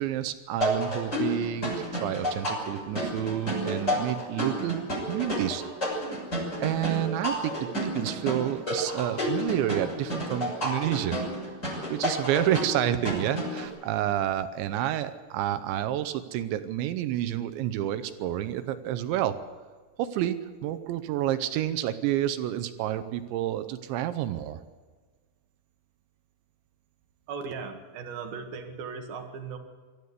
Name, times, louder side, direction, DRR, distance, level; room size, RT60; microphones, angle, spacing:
voice 1, 0.0-5.6 6.6-11.4 11.9-19.4 20.0-24.6, right 12 dB, 80° right, 10 dB, 2.7 m, -29 dB
sound 1, 0.6-13.7, equal, 15° left, 6.7 m, -31 dB
voice 2, 27.3-29.6, right 5 dB, 65° right, 5 dB, 2.7 m, -37 dB
23.5 x 14.0 x 8.2 m, 1.4 s
omnidirectional pair, 6.0 m